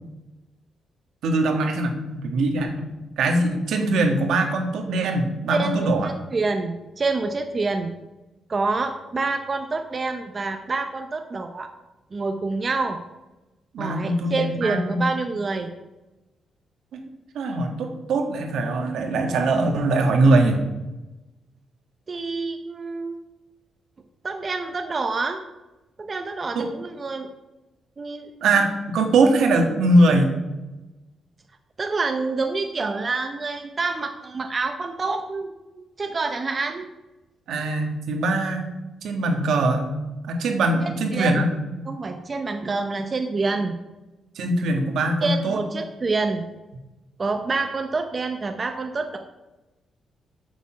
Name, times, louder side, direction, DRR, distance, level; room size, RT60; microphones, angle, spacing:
voice 1, 1.2-2.9 3.2-6.1 13.7-15.1 17.3-20.6 26.6-26.7 28.4-30.3 37.5-38.7 39.0-39.9 40.3-41.5 44.4-45.6, right 2 dB, 80° right, 3 dB, 1.8 m, -21 dB
voice 2, 5.5-7.9 8.5-11.7 12.1-13.0 13.8-15.7 22.1-23.2 24.2-25.4 26.0-27.3 28.0-28.3 31.8-36.9 41.1-41.3 41.9-43.8 45.2-46.5 47.2-49.2, right 3 dB, 30° right, 5 dB, 0.7 m, -27 dB
8.2 x 7.1 x 5.9 m, 1.0 s
cardioid pair, 135°, 0 cm